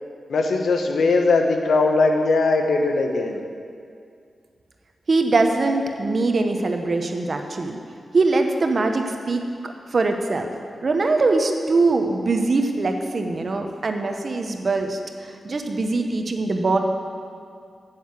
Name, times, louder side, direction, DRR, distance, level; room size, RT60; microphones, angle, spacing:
voice 1, 0.3-3.4, left 3 dB, 85° left, 4 dB, 1.0 m, -20 dB
voice 2, 5.1-7.8 8.1-10.5 10.8-16.8, right 3 dB, 55° right, 4 dB, 1.1 m, -22 dB
9.5 x 7.9 x 7.7 m, 2.3 s
cardioid pair, 75°, 0 cm